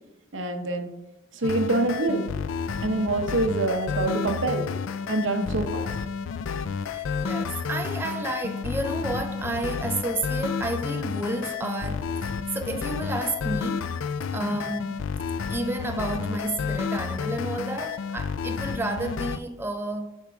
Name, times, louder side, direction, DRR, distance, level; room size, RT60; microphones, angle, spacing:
voice 1, 0.3-0.9 1.3-2.3 2.8-4.7 5.1-5.8, right 2 dB, 70° right, 0.8 m, -25 dB
sound 1, 1.4-19.4, left 6 dB, 80° left, 0.4 m, -31 dB
voice 2, 6.8-13.9 14.3-15.0 15.5-20.1, right 2 dB, 10° right, 0.4 m, -31 dB
8.8 x 4.6 x 3.5 m
head